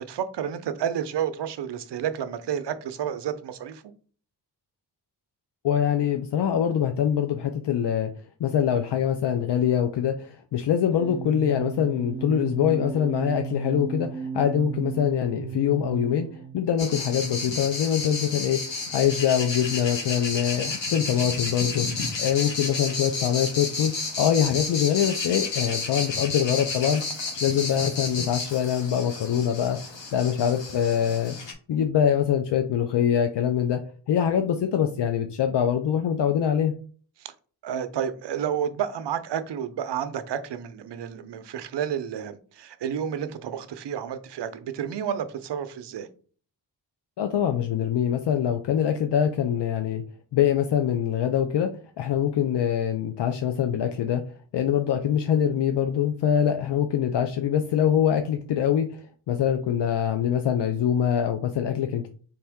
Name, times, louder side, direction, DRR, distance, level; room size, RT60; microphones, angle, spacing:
voice 1, 0.0-3.8 37.2-37.3 37.6-46.1, right 8 dB, 70° right, 0.6 m, -30 dB
voice 2, 5.6-8.1 8.4-16.3 16.5-27.0 27.3-29.8 30.1-31.4 31.7-33.8 34.1-36.7 47.2-50.0 50.3-51.7 52.0-54.2 54.5-62.1, left 9 dB, 70° left, 0.6 m, -24 dB
sound 1, 10.9-16.6, right 8 dB, 10° right, 0.9 m, -34 dB
sound 2, 16.8-31.5, left 3 dB, 90° left, 1.4 m, -32 dB
4.2 x 3.3 x 3.5 m
wide cardioid pair, 135°, 43 cm